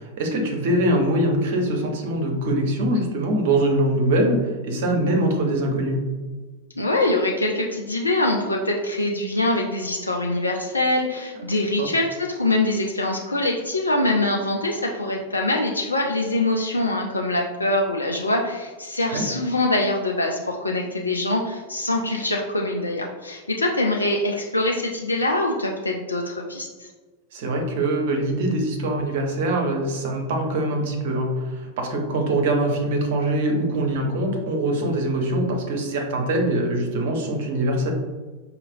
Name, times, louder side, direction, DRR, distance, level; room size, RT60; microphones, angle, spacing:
voice 1, 0.0-6.0 11.8-11.9 19.1-19.2 27.3-37.9, right 1 dB, 50° right, 2 dB, 0.8 m, -23 dB
voice 2, 6.8-26.9, left 2 dB, 80° left, 1 dB, 0.4 m, -24 dB
4.9 x 2.8 x 2.7 m, 1.3 s
figure-of-eight pair, 90°, 0 cm